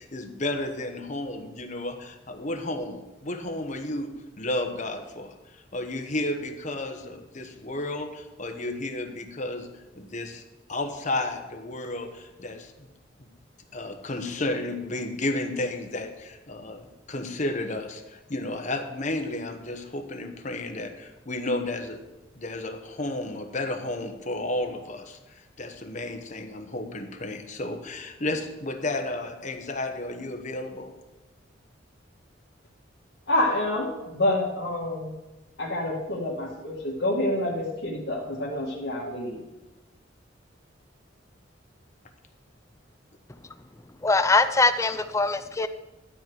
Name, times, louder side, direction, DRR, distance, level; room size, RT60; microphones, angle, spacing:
voice 1, 0.0-9.7 9.9-10.4 10.7-12.9 13.2-13.3 13.7-22.0 22.4-30.9, left 2 dB, 40° left, 5 dB, 1.2 m, -32 dB
voice 2, 33.3-35.1 35.6-39.4, left 1 dB, 65° left, -6 dB, 1.9 m, -27 dB
voice 3, 43.9-45.7, left 3 dB, 15° left, 11 dB, 0.4 m, -22 dB
12.5 x 4.6 x 8.0 m, 1.0 s
head